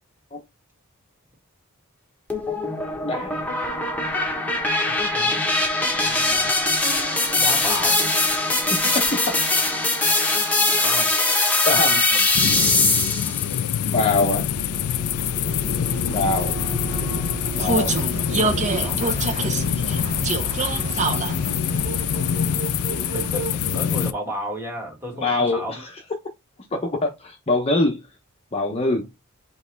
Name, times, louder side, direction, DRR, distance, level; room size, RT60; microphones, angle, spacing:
sound 1, 2.3-13.4, left 2 dB, 5° left, 1.0 m, -21 dB
voice 1, 3.0-3.3 8.7-9.4 11.7-12.1 13.9-14.5 16.1-16.6 17.5-18.0 21.3-21.5 22.5-23.1 25.1-25.9 26.7-28.1 28.5-29.1, left 2 dB, 30° left, 0.7 m, -24 dB
voice 2, 4.8-5.5 6.0-6.6 7.3-8.1 10.8-11.1 12.1-12.2 18.8-19.6 23.1-25.8, equal, 10° right, 1.7 m, -33 dB
Vehicle, 12.2-23.8, right 3 dB, 35° right, 0.6 m, -29 dB
sound 2, 12.3-24.1, left 9 dB, 90° left, 0.4 m, -25 dB
5.2 x 3.0 x 3.3 m
head